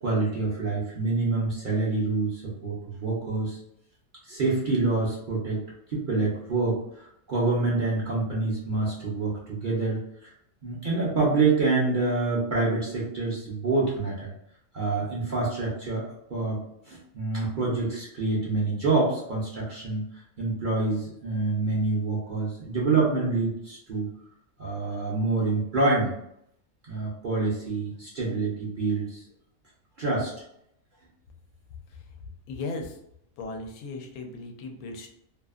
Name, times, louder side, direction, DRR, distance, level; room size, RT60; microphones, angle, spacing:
voice 1, 0.0-3.6 4.2-5.6 5.9-10.3 10.6-14.3 14.7-24.1 24.6-26.1 26.9-29.2 30.0-30.3, right 3 dB, 50° right, -5 dB, 0.6 m, -27 dB
voice 2, 32.5-33.0 33.4-35.2, left 3 dB, 90° left, 3 dB, 1.0 m, -37 dB
2.7 x 2.4 x 2.4 m, 0.75 s
omnidirectional pair, 1.5 m